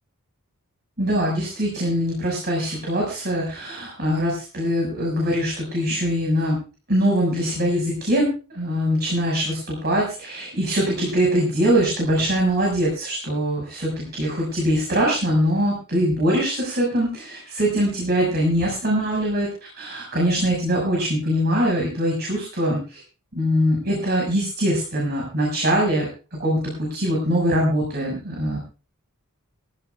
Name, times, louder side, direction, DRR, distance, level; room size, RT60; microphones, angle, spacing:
voice 1, 1.0-6.6 6.9-8.3 8.5-19.5 19.8-23.0 23.3-28.6, equal, 50° right, -3 dB, 6.3 m, -22 dB
20.5 x 16.5 x 2.5 m, 0.35 s
head